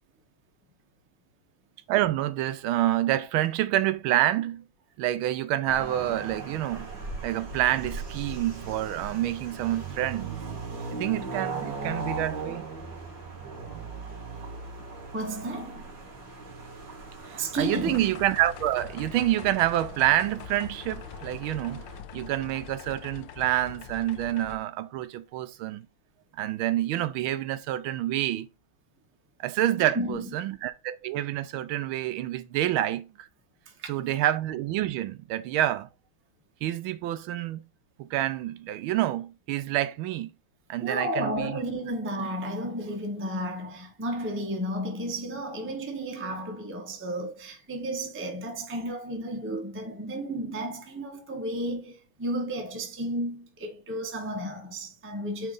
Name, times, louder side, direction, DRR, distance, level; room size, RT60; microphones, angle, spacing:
voice 1, 1.9-4.6 5.0-6.9 7.2-10.4 10.9-12.7 17.3-21.8 22.1-25.9 26.4-28.5 29.4-33.3 33.9-35.9 36.6-37.6 38.0-40.3 40.7-41.6, right 13 dB, 80° right, 1.4 m, -27 dB
sound 1, 5.7-22.0, right 4 dB, 60° right, 2.4 m, -39 dB
voice 2, 15.1-15.9 17.4-18.0 29.8-30.4 33.8-33.9 40.8-55.5, right 1 dB, 15° right, 0.5 m, -33 dB
sound 2, 17.6-24.6, left 7 dB, 70° left, 1.2 m, -43 dB
8.9 x 3.3 x 3.8 m
omnidirectional pair, 2.3 m